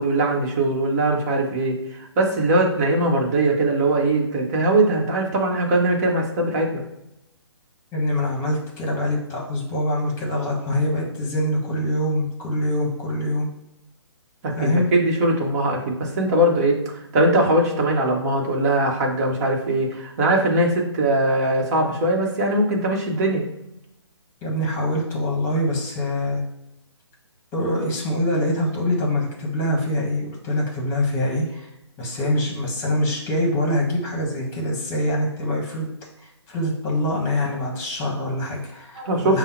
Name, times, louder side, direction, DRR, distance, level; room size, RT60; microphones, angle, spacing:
voice 1, 0.0-6.8 14.4-23.4 39.0-39.4, right 1 dB, 35° right, 0 dB, 1.1 m, -21 dB
voice 2, 7.9-13.5 14.6-14.9 24.4-26.4 27.5-31.7 32.0-35.9 36.2-39.4, left 1 dB, 15° left, -2 dB, 1.2 m, -24 dB
5.3 x 2.1 x 4.4 m, 0.86 s
figure-of-eight pair, 145°, 15 cm